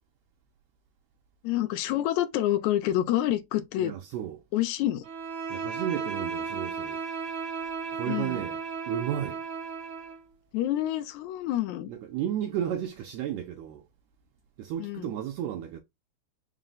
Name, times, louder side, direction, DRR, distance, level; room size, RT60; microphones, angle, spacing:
voice 1, 1.4-3.9 4.5-5.0 8.1-8.4 10.5-11.9 14.8-15.1, left 13 dB, 85° left, 2.0 m, -27 dB
voice 2, 3.8-4.4 5.5-7.0 7.9-8.6 8.9-9.4 11.9-13.9 14.6-15.8, right 10 dB, 75° right, 1.7 m, -33 dB
Bowed string instrument, 5.0-10.2, right 5 dB, 60° right, 1.4 m, -35 dB
4.8 x 2.1 x 3.8 m
omnidirectional pair, 3.4 m